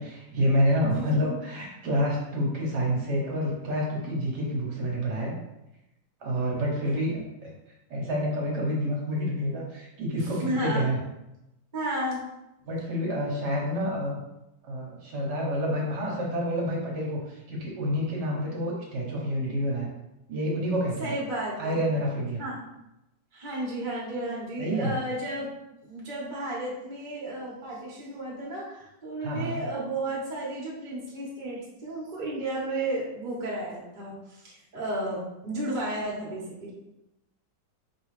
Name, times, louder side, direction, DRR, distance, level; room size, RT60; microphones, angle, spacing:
voice 1, 0.0-5.3 6.2-7.5 7.9-11.0 12.7-14.2 14.6-19.9 20.3-21.1 21.6-22.4 24.6-24.9 29.2-29.6, equal, 70° right, -3 dB, 1.5 m, -28 dB
voice 2, 0.9-1.4 10.2-10.9 11.7-12.2 21.0-21.8 22.4-22.6 23.3-25.5 25.8-36.7, right 1 dB, 30° right, -5 dB, 1.2 m, -33 dB
4.7 x 3.1 x 3.2 m, 0.90 s
omnidirectional pair, 1.9 m